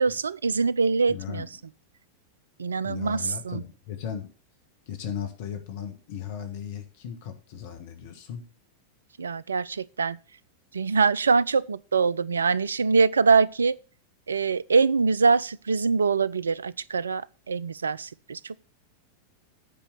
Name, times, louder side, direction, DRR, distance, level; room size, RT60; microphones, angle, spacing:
voice 1, 0.0-1.5 2.6-3.6 9.2-10.2 10.7-13.8 14.3-18.6, right 4 dB, 70° right, 0.4 m, -24 dB
voice 2, 1.1-1.5 2.8-4.3 4.9-8.5, left 8 dB, 50° left, 1.5 m, -36 dB
8.9 x 5.4 x 6.6 m
figure-of-eight pair, 90°, 0 cm